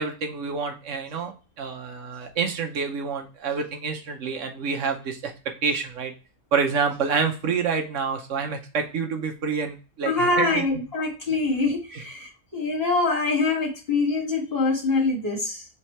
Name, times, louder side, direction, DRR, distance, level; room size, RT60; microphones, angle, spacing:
voice 1, 0.0-1.3 1.6-5.3 5.6-6.1 6.5-10.6, right 5 dB, 60° right, 4 dB, 1.0 m, -27 dB
voice 2, 10.0-15.7, left 3 dB, 40° left, -5 dB, 1.9 m, -24 dB
3.6 x 3.3 x 4.2 m, 0.33 s
omnidirectional pair, 1.6 m